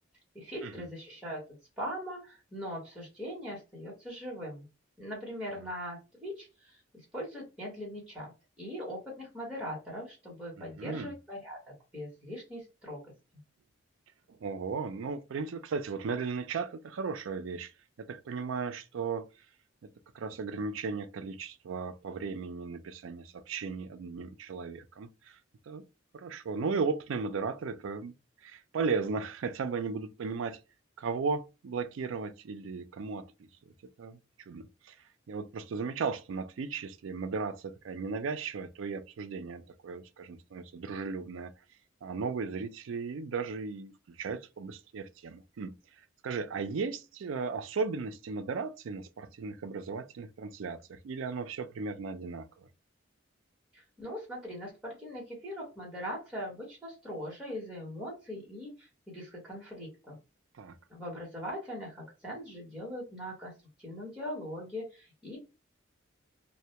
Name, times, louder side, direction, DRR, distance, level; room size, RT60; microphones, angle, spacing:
voice 1, 0.3-1.4 1.8-4.6 5.0-8.3 8.6-13.0 53.7-60.2 60.9-63.5 63.8-65.4, equal, 5° right, 1.0 m, -41 dB
voice 2, 10.6-11.1 14.3-17.7 18.0-19.3 20.1-25.4 25.7-25.8 26.1-28.1 28.4-30.6 31.0-33.5 34.0-35.0 35.3-41.5 42.0-45.7 46.2-52.7 60.6-60.8, right 5 dB, 75° right, 0.4 m, -36 dB
2.1 x 2.1 x 2.8 m
head